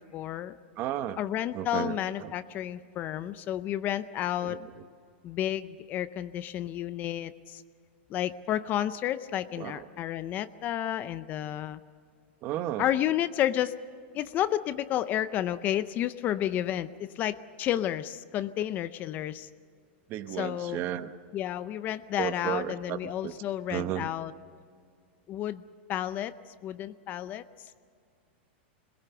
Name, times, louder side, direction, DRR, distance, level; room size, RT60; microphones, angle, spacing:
voice 1, 0.0-0.6 1.2-4.6 5.2-7.6 8.1-11.8 12.8-13.7 14.1-19.5 20.4-20.8 21.3-24.3 25.3-25.6 25.9-26.3 26.6-27.4, left 12 dB, 30° left, 14 dB, 0.6 m, -31 dB
voice 2, 0.8-1.2 1.5-2.3 4.4-4.7 9.6-9.9 12.4-12.9 20.1-21.1 22.2-23.3 23.7-24.1, right 12 dB, 35° right, 11 dB, 1.0 m, -34 dB
22.0 x 20.5 x 6.9 m, 2.2 s
supercardioid pair, 155°, 6 cm